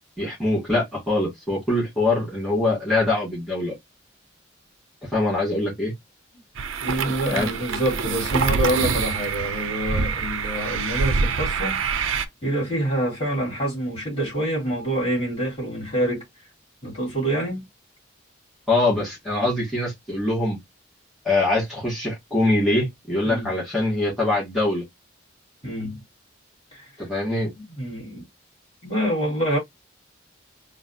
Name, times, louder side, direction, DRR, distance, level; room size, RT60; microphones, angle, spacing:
voice 1, 0.2-3.7 5.0-5.9 7.3-7.5 18.7-20.6 21.2-24.8 27.0-27.5, left 2 dB, ahead, 2.1 m, -23 dB
sound 1, 6.5-12.2, right 5 dB, 85° right, 0.5 m, -25 dB
voice 2, 6.8-16.2 16.8-17.6 23.2-23.5 25.6-26.0 26.7-26.9 27.6-28.2 28.8-29.6, right 1 dB, 30° left, 2.7 m, -26 dB
4.0 x 2.3 x 2.7 m
head